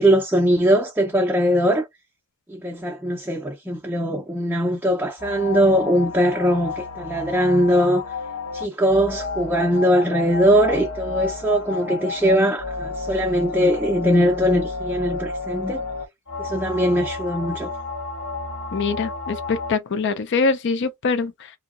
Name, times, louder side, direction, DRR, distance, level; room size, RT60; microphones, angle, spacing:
voice 1, 0.0-1.9 2.5-8.0 8.5-15.8 16.4-17.7, equal, 10° right, 0.5 m, -20 dB
sound 1, 5.2-19.7, left 4 dB, 85° left, 1.7 m, -31 dB
voice 2, 18.7-21.5, left 4 dB, 55° left, 0.5 m, -23 dB
2.8 x 2.7 x 2.4 m
head